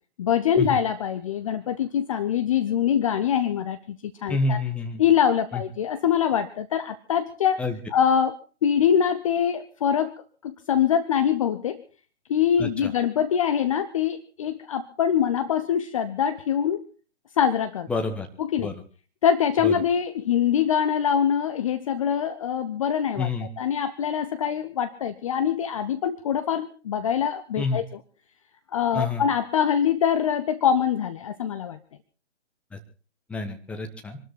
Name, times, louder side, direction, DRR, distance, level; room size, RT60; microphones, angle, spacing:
voice 1, 0.2-4.6 5.0-7.6 7.9-8.3 8.6-10.2 10.4-11.8 12.3-16.8 17.4-17.9 18.4-18.7 19.2-23.3 23.6-27.9 28.7-31.8, left 8 dB, 30° left, 11 dB, 0.7 m, -24 dB
voice 2, 4.3-5.0 5.5-5.6 7.6-7.8 12.6-12.9 17.9-18.3 18.6-18.7 19.6-19.7 23.2-23.5 27.6-27.8 28.9-29.2 32.7-32.8 33.3-34.2, left 3 dB, 5° left, 5 dB, 1.2 m, -28 dB
25.0 x 12.5 x 4.2 m, 0.38 s
figure-of-eight pair, 130°, 36 cm